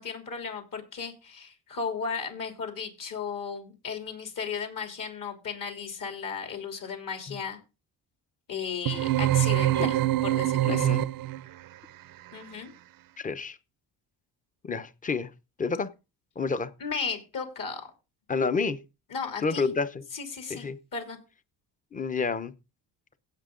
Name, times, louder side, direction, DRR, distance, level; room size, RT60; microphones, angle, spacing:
voice 1, 0.0-7.6 8.5-11.0 12.3-12.7 16.8-17.8 19.1-19.7 20.1-21.2, left 5 dB, 55° left, 3.1 m, -35 dB
sound 1, 8.9-11.5, right 15 dB, 60° right, 0.6 m, -24 dB
voice 2, 10.7-11.1 13.2-13.6 14.6-15.3 15.6-15.9 16.4-16.7 18.3-18.8 19.4-20.0 20.5-20.8 21.9-22.5, left 4 dB, 20° left, 0.8 m, -29 dB
16.5 x 6.5 x 3.8 m
cardioid pair, 115°, 39 cm